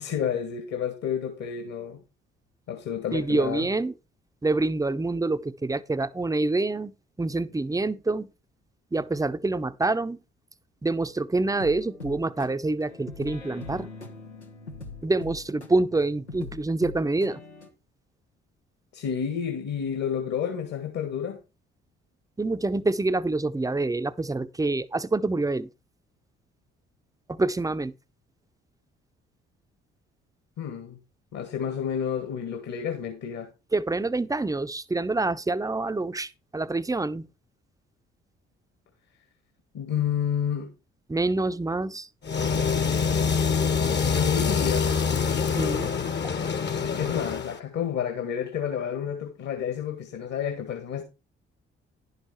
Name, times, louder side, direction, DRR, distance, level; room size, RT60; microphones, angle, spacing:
voice 1, 0.0-2.0 2.7-3.7 18.9-21.4 30.6-31.0 31.3-33.5 39.7-40.7 44.0-45.0 46.8-51.0, left 8 dB, 55° left, 1.9 m, -30 dB
voice 2, 3.1-3.9 4.4-8.3 8.9-10.2 10.8-13.9 15.0-17.4 22.4-25.7 27.3-27.9 33.7-37.3 41.1-42.1 45.6-45.9, right 2 dB, 10° right, 0.7 m, -26 dB
sound 1, 11.6-17.7, left 3 dB, 90° left, 1.0 m, -42 dB
sound 2, 42.2-47.6, left 5 dB, 35° left, 1.1 m, -25 dB
11.0 x 6.6 x 4.5 m
figure-of-eight pair, 45°, 32 cm